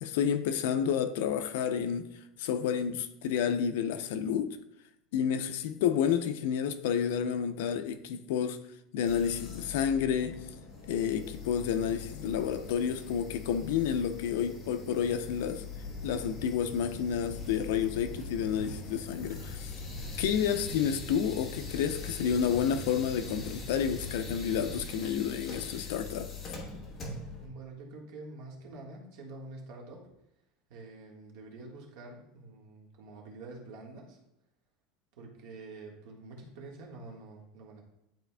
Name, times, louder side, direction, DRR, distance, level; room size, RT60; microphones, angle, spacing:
voice 1, 0.0-2.1 2.4-4.6 5.1-8.6 8.9-10.4 10.9-15.6 16.0-19.7 20.2-26.3, left 8 dB, 75° left, 0.5 m, -30 dB
sound 1, 9.0-27.5, left 5 dB, 25° left, 1.1 m, -43 dB
sound 2, 15.7-24.9, right 2 dB, 40° left, 2.3 m, -43 dB
voice 2, 27.4-30.1 30.7-34.2 35.2-37.8, right 2 dB, 60° right, 1.5 m, -47 dB
10.5 x 4.2 x 2.2 m
cardioid pair, 175°, 0 cm